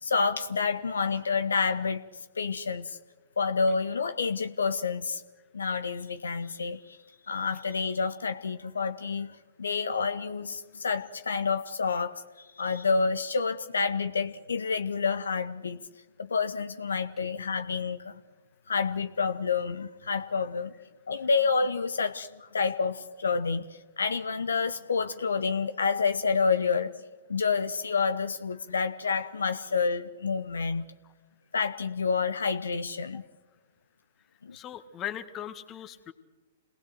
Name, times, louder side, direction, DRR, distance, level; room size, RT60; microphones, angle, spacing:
voice 1, 0.0-2.0 2.4-3.0 3.4-5.2 5.5-7.0 7.3-15.8 16.2-18.2 18.7-20.7 21.1-23.7 24.0-26.9 27.3-30.9 31.5-33.2 34.4-34.6, left 5 dB, 75° left, 10 dB, 0.9 m, -28 dB
voice 2, 34.5-36.1, left 11 dB, 25° left, 9 dB, 1.7 m, -39 dB
27.0 x 19.0 x 7.9 m, 1.2 s
figure-of-eight pair, 115°, 0 cm